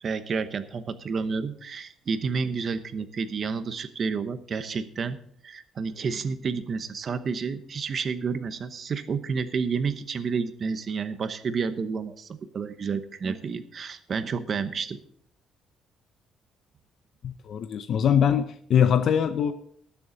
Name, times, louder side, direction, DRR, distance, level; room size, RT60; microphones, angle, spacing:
voice 1, 0.0-5.2 5.4-15.0, right 5 dB, 35° right, 11 dB, 0.9 m, -30 dB
voice 2, 17.2-19.5, left 8 dB, 50° left, 9 dB, 0.7 m, -22 dB
19.5 x 7.0 x 4.0 m, 0.64 s
cardioid pair, 160°, 0 cm